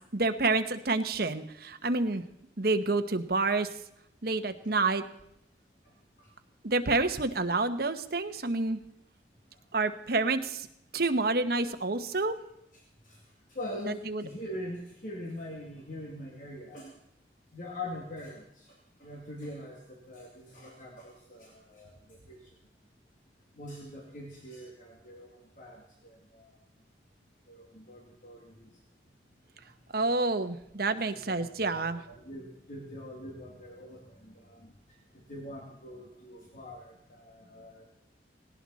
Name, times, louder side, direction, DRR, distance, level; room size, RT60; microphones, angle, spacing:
voice 1, 0.1-2.2 2.6-3.7 4.2-5.0 6.6-8.8 9.7-10.7 10.9-12.3 14.1-14.2 29.9-32.0, right 3 dB, 55° right, 8 dB, 1.2 m, -28 dB
voice 2, 13.5-16.9 17.5-18.6 19.0-22.4 23.6-25.3 25.6-25.8 26.3-26.5 27.5-28.7 30.8-34.7 35.3-37.9, left 1 dB, 45° left, -1 dB, 2.5 m, -43 dB
18.0 x 18.0 x 4.2 m, 0.77 s
head